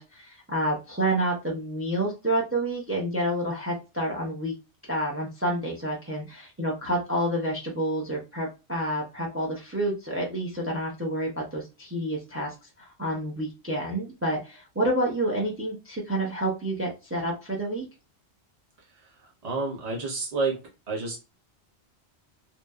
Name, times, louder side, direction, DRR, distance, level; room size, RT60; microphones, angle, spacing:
voice 1, 0.0-4.5 4.9-17.8, right 1 dB, 20° right, -1 dB, 0.3 m, -29 dB
voice 2, 18.9-20.6 20.9-21.2, right 3 dB, 40° right, -2 dB, 0.8 m, -30 dB
2.8 x 2.0 x 2.3 m, 0.29 s
omnidirectional pair, 1.2 m